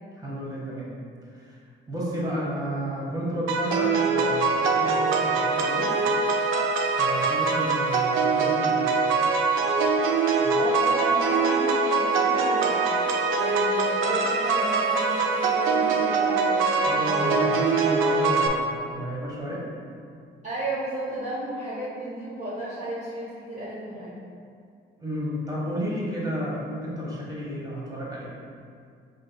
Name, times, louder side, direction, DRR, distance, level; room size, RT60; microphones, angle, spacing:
voice 1, 0.1-0.9 1.3-1.6 1.9-5.9 6.9-8.9 10.4-10.6 16.8-19.6 25.0-28.3, equal, 20° right, -5 dB, 1.2 m, -32 dB
sound 1, 3.5-18.5, right 4 dB, 85° right, 0.4 m, -23 dB
voice 2, 10.1-12.9 13.3-17.5 20.4-24.1, right 1 dB, 35° right, -8 dB, 0.9 m, -34 dB
5.2 x 3.6 x 2.2 m, 2.3 s
cardioid pair, 90°, 20 cm